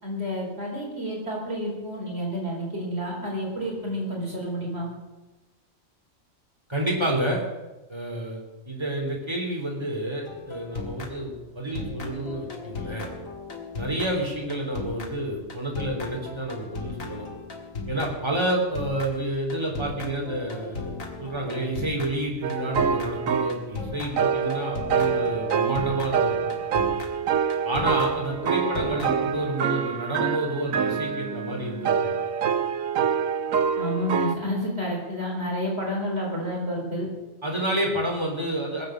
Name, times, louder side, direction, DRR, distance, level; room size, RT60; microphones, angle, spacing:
voice 1, 0.0-4.9 33.8-37.1, equal, 50° right, -3 dB, 4.7 m, -30 dB
voice 2, 6.7-7.4 7.9-13.1 13.7-17.3 17.9-26.5 27.6-32.1 37.4-38.9, right 1 dB, 20° right, -1 dB, 3.4 m, -29 dB
sound 1, 10.3-11.5 11.7-29.5, left 4 dB, 85° left, 2.2 m, -37 dB
sound 2, 22.4-23.6 24.2-34.4, right 7 dB, 85° right, 1.2 m, -26 dB
20.0 x 8.0 x 6.4 m, 1.1 s
omnidirectional pair, 1.4 m